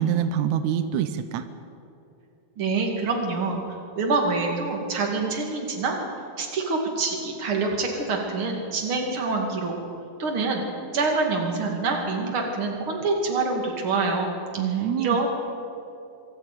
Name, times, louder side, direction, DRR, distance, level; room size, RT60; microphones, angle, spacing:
voice 1, 0.0-1.5 14.6-15.2, right 9 dB, 90° right, 10 dB, 1.6 m, -25 dB
voice 2, 2.6-3.6 4.0-6.0 6.4-9.8 10.2-10.6 10.9-14.3 15.0-15.3, right 3 dB, 40° right, 1 dB, 2.8 m, -26 dB
24.0 x 13.5 x 9.2 m, 2.7 s
omnidirectional pair, 4.4 m